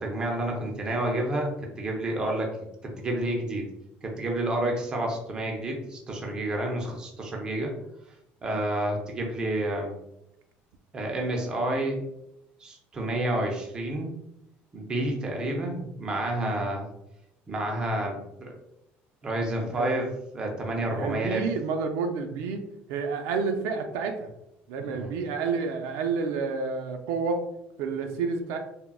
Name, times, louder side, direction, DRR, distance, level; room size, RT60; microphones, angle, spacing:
voice 1, 0.0-2.5 2.8-3.7 4.0-7.7 8.4-9.9 10.9-12.0 12.6-14.2 14.7-16.9 17.5-18.5 19.2-21.4 24.9-25.1, right 1 dB, 20° right, 1 dB, 0.4 m, -29 dB
voice 2, 20.9-24.3 24.7-27.4 27.8-28.6, right 5 dB, 85° right, 5 dB, 0.4 m, -30 dB
3.5 x 2.0 x 2.3 m, 0.82 s
cardioid pair, 180°, 4 cm